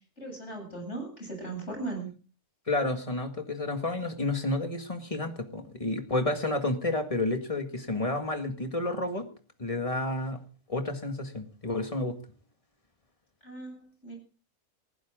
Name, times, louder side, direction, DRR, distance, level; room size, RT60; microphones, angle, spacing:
voice 1, 0.2-2.1 13.4-14.2, right 2 dB, 50° left, 3 dB, 8.4 m, -38 dB
voice 2, 2.7-9.3 9.6-10.4 10.7-12.2, left 2 dB, 25° left, 6 dB, 2.0 m, -30 dB
20.0 x 15.5 x 3.8 m, 0.39 s
omnidirectional pair, 1.6 m